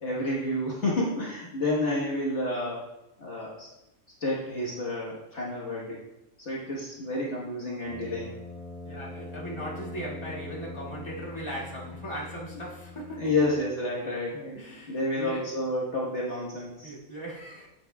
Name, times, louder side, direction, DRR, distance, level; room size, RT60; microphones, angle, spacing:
voice 1, 0.0-2.8 3.2-3.7 4.2-6.0 6.4-8.4 13.2-14.6 14.9-16.9, left 1 dB, 55° left, -4 dB, 1.6 m, -30 dB
Brass instrument, 7.8-13.7, left 3 dB, 85° right, 2.4 m, -42 dB
voice 2, 8.8-13.3 14.5-15.7 16.8-17.7, right 1 dB, 20° left, -5 dB, 2.2 m, -38 dB
11.0 x 8.3 x 2.3 m, 0.91 s
omnidirectional pair, 1.4 m